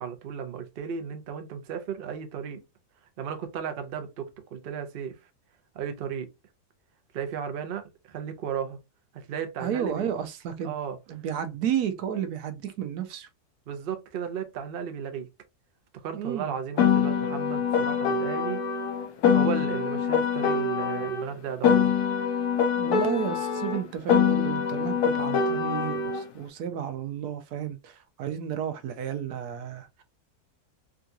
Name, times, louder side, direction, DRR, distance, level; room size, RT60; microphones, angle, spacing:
voice 1, 0.0-2.6 3.2-5.2 5.7-6.3 7.1-8.8 9.1-10.1 10.6-11.0 13.7-15.3 15.9-18.6 19.3-22.0, right 7 dB, 55° right, 0.6 m, -34 dB
voice 2, 9.6-10.7 11.1-13.3 16.1-16.5 22.8-30.0, right 9 dB, 80° right, 1.2 m, -32 dB
Piano, 16.8-21.2 21.6-26.2, left 7 dB, 75° left, 1.1 m, -24 dB
3.7 x 2.3 x 2.6 m
omnidirectional pair, 1.7 m